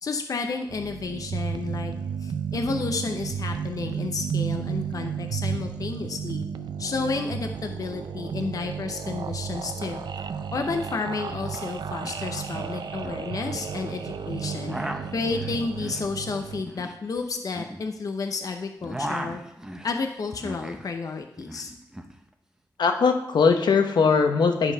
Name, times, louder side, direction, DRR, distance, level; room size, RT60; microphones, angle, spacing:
voice 1, 0.0-1.9 2.2-6.4 6.8-10.0 10.5-14.8 15.1-19.4 19.8-21.7, left 4 dB, 55° left, 5 dB, 0.6 m, -31 dB
sound 1, 0.7-16.6, right 7 dB, 90° right, 0.5 m, -33 dB
sound 2, 11.5-11.6 11.8-12.2 12.5-13.7 14.4-18.4 18.6-20.9 21.2-22.1, right 1 dB, 10° right, 0.7 m, -37 dB
voice 2, 22.8-24.7, left 5 dB, 85° left, 6 dB, 0.8 m, -20 dB
11.0 x 4.0 x 5.4 m, 0.82 s
wide cardioid pair, 130°, 7 cm